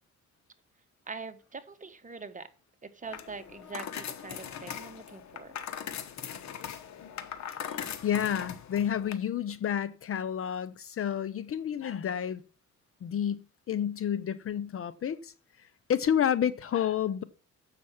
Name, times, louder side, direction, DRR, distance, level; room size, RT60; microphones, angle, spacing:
voice 1, 1.1-2.5 2.8-5.5, right 4 dB, 25° right, 1.2 m, -43 dB
sound 1, 3.0-9.1, left 8 dB, 65° left, 1.1 m, -40 dB
voice 2, 7.7-12.4 13.0-15.3 15.6-17.2, left 9 dB, 50° left, 0.7 m, -30 dB
7.5 x 5.9 x 7.1 m
cardioid pair, 90°, 30 cm